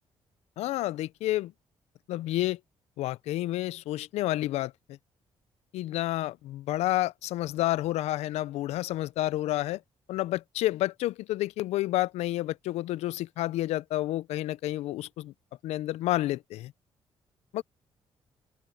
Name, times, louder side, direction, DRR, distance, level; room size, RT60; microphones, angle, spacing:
voice 1, 0.6-1.5 2.1-2.6 3.0-5.0 5.7-9.8 10.1-15.3 15.6-16.7 17.5-17.6, left 15 dB, 85° left, 0.5 m, -30 dB
open air
cardioid pair, 75°, 11 cm